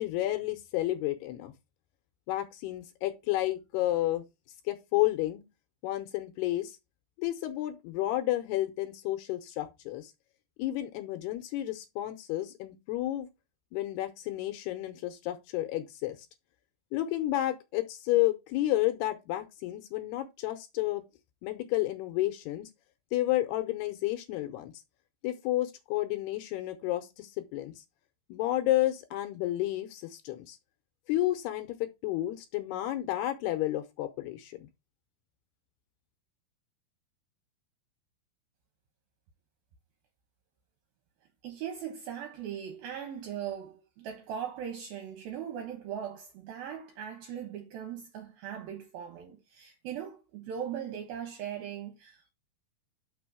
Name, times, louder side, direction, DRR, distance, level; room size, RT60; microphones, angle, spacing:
voice 1, 0.0-1.5 2.3-4.2 4.7-5.4 5.8-6.8 7.2-10.1 10.6-13.3 13.7-16.2 16.9-21.0 21.4-22.7 23.1-24.7 25.2-27.8 28.3-30.6 31.1-34.7, left 15 dB, 85° left, 2.8 m, -31 dB
voice 2, 41.4-52.3, right 9 dB, 70° right, 2.7 m, -39 dB
6.2 x 4.3 x 6.1 m
omnidirectional pair, 4.8 m